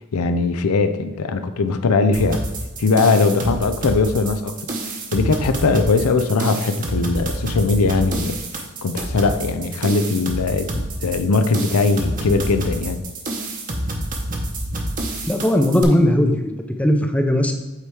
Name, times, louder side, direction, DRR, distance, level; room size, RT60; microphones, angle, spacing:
voice 1, 0.1-2.5 2.8-4.5 5.1-13.0, left 3 dB, 85° left, 9 dB, 0.5 m, -20 dB
sound 1, 2.1-15.8, right 1 dB, 35° right, 0.9 m, -28 dB
voice 2, 15.3-17.6, left 1 dB, 5° left, 4 dB, 0.5 m, -18 dB
8.2 x 3.4 x 4.7 m, 1.1 s
head